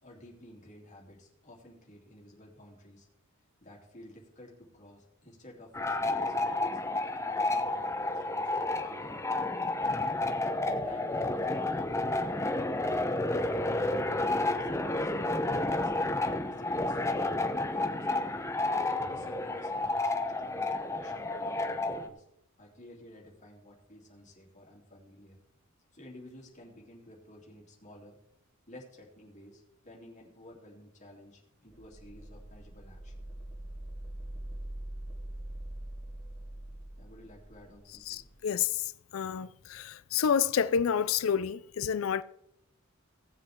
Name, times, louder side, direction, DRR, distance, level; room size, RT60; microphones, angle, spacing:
voice 1, 0.0-3.1 3.6-6.8 7.1-9.1 9.8-12.7 13.1-15.9 16.4-18.5 19.1-22.2 22.6-25.4 25.9-28.2 28.7-33.2 37.0-38.2, left 1 dB, 35° left, 3.1 m, -53 dB
sound 1, 5.7-22.1, left 2 dB, 15° left, 0.8 m, -31 dB
sound 2, 31.7-38.3, right 1 dB, 20° right, 2.6 m, -43 dB
voice 2, 38.1-42.2, left 7 dB, 75° left, 0.4 m, -29 dB
18.0 x 7.8 x 3.7 m
head